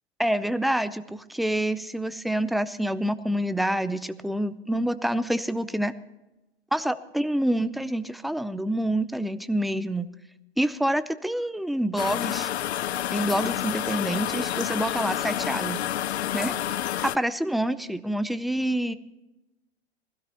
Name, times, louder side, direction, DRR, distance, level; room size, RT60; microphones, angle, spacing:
voice 1, 0.2-5.9 6.7-10.1 10.6-12.5 13.1-15.8 16.3-16.6 17.0-18.9, right 1 dB, ahead, 13 dB, 0.5 m, -27 dB
sound 1, 12.0-17.2, left 12 dB, 80° left, 0.5 m, -29 dB
20.5 x 16.5 x 2.9 m, 1.0 s
hypercardioid pair, 100°, 32 cm